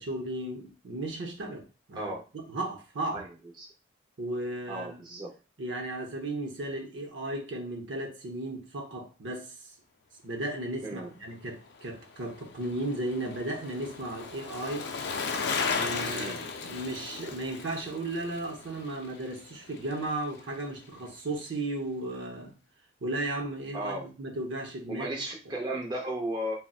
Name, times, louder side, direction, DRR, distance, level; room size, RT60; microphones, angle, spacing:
voice 1, 0.0-1.6 1.9-3.3 4.2-5.0 5.6-9.5 10.2-14.9 15.7-22.6 23.0-25.1, right 2 dB, 65° right, 0.7 m, -35 dB
voice 2, 4.7-5.3 10.8-11.1 16.1-16.4 23.7-24.0 24.9-26.5, right 1 dB, 20° right, 0.6 m, -34 dB
Bicycle, 11.7-20.1 20.4-20.5, left 5 dB, 60° left, 0.4 m, -36 dB
3.9 x 2.1 x 2.3 m
head